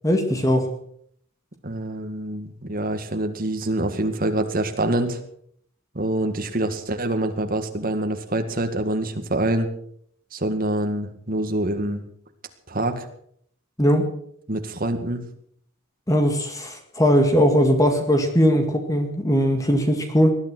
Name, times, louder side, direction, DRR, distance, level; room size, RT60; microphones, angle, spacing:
voice 1, 0.0-0.7 13.8-14.1 16.1-20.3, equal, 15° left, 5 dB, 1.9 m, -19 dB
voice 2, 1.6-5.2 5.9-9.7 10.3-12.0 12.7-13.0 14.5-15.2, right 1 dB, 45° right, 6 dB, 2.1 m, -25 dB
20.0 x 11.5 x 6.2 m, 0.65 s
head